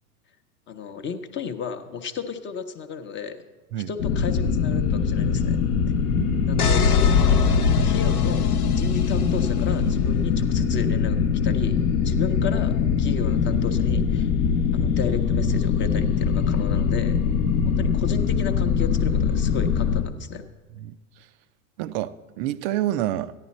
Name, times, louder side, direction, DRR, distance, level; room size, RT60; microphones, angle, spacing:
voice 1, 0.7-3.4 3.9-5.6 6.5-6.9 7.8-8.4 8.7-11.2 11.4-11.8 12.0-14.3 14.7-17.2 17.6-20.5, left 6 dB, 25° left, 7 dB, 0.7 m, -33 dB
sound 1, 4.0-20.0, left 6 dB, 55° left, 0.9 m, -22 dB
voice 2, 6.1-6.7 17.4-17.9 20.7-21.3 21.8-23.3, right 13 dB, 45° right, 15 dB, 0.5 m, -29 dB
sound 2, 6.6-9.5, left 5 dB, 90° left, 0.9 m, -23 dB
14.0 x 10.5 x 4.1 m, 1.2 s
hypercardioid pair, 105°, 44 cm